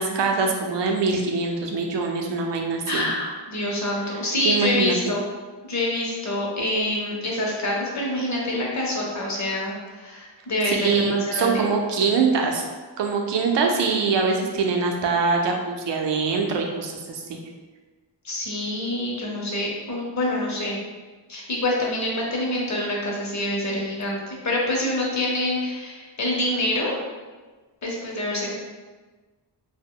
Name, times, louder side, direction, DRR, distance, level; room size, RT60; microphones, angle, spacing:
voice 1, 0.0-3.1 4.4-5.0 10.7-12.6 13.0-17.2, right 4 dB, 75° right, 2 dB, 0.6 m, -23 dB
voice 2, 2.9-5.3 5.7-11.7 18.2-20.8 21.3-27.0 27.8-28.5, left 1 dB, 40° left, -3 dB, 0.7 m, -26 dB
2.8 x 2.2 x 3.6 m, 1.3 s
wide cardioid pair, 165°, 44 cm